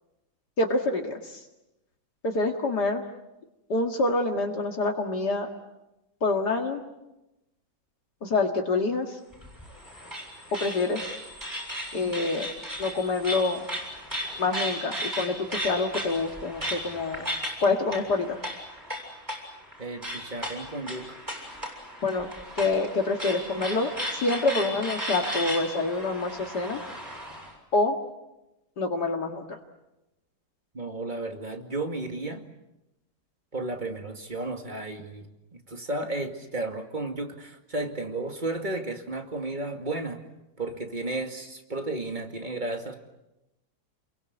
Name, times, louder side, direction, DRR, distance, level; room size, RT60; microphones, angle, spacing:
voice 1, 0.6-1.4 2.2-3.0 3.7-5.5 6.2-6.8 8.2-9.2 10.5-11.1 11.9-12.5 12.8-13.6 14.4-17.2 17.6-18.4 22.0-22.3 22.6-26.8 27.7-28.0 28.8-29.6, left 3 dB, 75° left, 2 dB, 2.6 m, -26 dB
sound 1, 9.3-27.5, equal, 10° right, 7.1 m, -36 dB
voice 2, 19.8-21.2 30.7-32.5 33.5-35.3 35.7-40.2 40.6-42.9, right 2 dB, 25° right, 4 dB, 2.5 m, -33 dB
29.5 x 22.5 x 8.2 m, 0.94 s
omnidirectional pair, 1.8 m